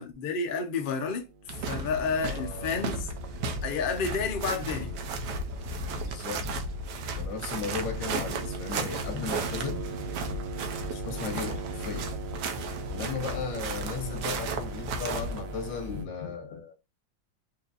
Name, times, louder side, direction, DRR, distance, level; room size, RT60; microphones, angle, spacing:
voice 1, 0.0-3.1 3.6-5.2, left 5 dB, 60° left, 0.5 m, -31 dB
sound 1, 1.0-16.0, right 3 dB, 85° right, 0.5 m, -41 dB
sound 2, 1.5-15.4, right 2 dB, 70° right, 1.2 m, -34 dB
voice 2, 2.1-2.8 6.0-6.6 7.1-9.9 10.3-10.4 10.9-12.1 12.9-16.8, left 5 dB, 80° left, 1.7 m, -36 dB
4.4 x 2.9 x 2.5 m
omnidirectional pair, 2.0 m